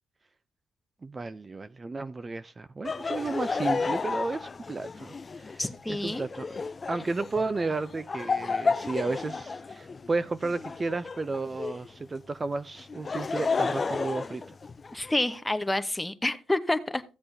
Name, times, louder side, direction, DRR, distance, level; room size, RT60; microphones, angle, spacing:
voice 1, 1.0-5.6 5.9-6.6 6.9-14.4, right 3 dB, 25° right, 0.4 m, -33 dB
Laughter, 2.8-11.9 12.8-15.1, left 4 dB, 30° left, 0.4 m, -32 dB
voice 2, 5.6-6.3 14.9-17.0, left 1 dB, 10° left, 0.8 m, -28 dB
15.5 x 7.7 x 2.7 m
cardioid pair, 90°, 0 cm